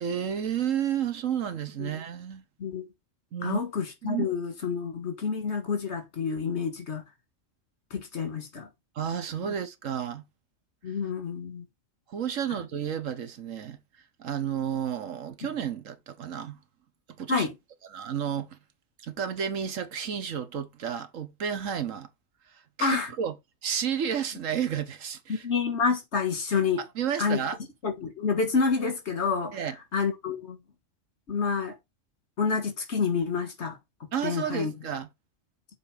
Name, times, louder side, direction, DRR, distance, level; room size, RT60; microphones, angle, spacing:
voice 1, 0.0-2.4 3.3-3.6 4.0-4.3 8.9-10.2 12.1-13.8 14.2-16.6 17.2-17.5 17.8-18.6 19.0-22.1 22.5-23.4 23.6-25.5 26.8-27.6 29.5-29.8 34.1-35.1, right 8 dB, 85° right, 1.5 m, -31 dB
voice 2, 3.4-7.0 7.9-8.7 9.4-9.5 10.8-11.6 17.3-17.5 22.8-23.1 25.3-26.8 27.2-27.4 27.8-29.6 29.9-30.6 31.3-31.8 32.4-33.8 34.2-34.7, left 5 dB, 60° left, 2.0 m, -28 dB
6.9 x 4.5 x 5.0 m
omnidirectional pair, 1.3 m